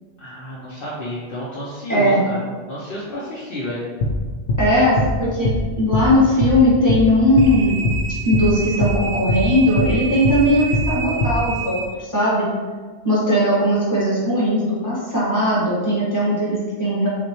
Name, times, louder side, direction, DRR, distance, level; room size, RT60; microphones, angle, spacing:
voice 1, 0.2-3.8, left 1 dB, 55° left, -7 dB, 0.9 m, -30 dB
voice 2, 1.9-2.2 4.6-5.5 5.8-7.8 8.2-12.5 13.0-17.1, equal, 15° left, -9 dB, 1.4 m, -18 dB
sound 1, 4.0-4.2 4.5-4.6 5.0-5.1 5.4-5.6 5.9-6.1 6.4-6.6 6.9-7.0 7.4-7.5 7.8-8.0 8.3-8.5 8.8-9.0 9.3-9.4 9.8-9.9 10.2-10.4 10.7-10.9 11.2-11.4, left 2 dB, 85° left, 0.9 m, -21 dB
sound 2, 7.3-11.9, right 5 dB, 70° right, 0.3 m, -30 dB
5.9 x 2.2 x 3.0 m, 1.4 s
omnidirectional pair, 1.2 m